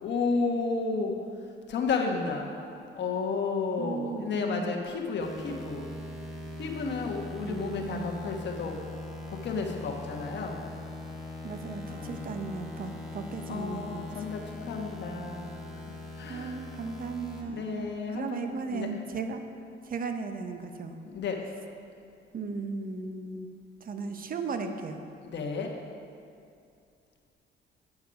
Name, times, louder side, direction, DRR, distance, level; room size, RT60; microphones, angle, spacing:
voice 1, 0.0-1.1 1.7-2.5 2.9-5.9 6.6-8.8 9.3-10.6 11.9-12.4 13.5-15.5 15.9-16.6 17.4-18.9 21.0-21.4 25.2-25.7, left 4 dB, 60° left, 1 dB, 1.3 m, -32 dB
voice 2, 3.8-4.7 7.4-8.1 11.4-14.0 16.3-19.4 19.9-21.0 22.3-23.5 23.8-25.0, right 4 dB, 45° right, 7 dB, 0.8 m, -36 dB
sound 1, 5.2-17.4, left 2 dB, ahead, 1.8 m, -41 dB
8.5 x 7.1 x 5.2 m, 2.4 s
cardioid pair, 90°, 20 cm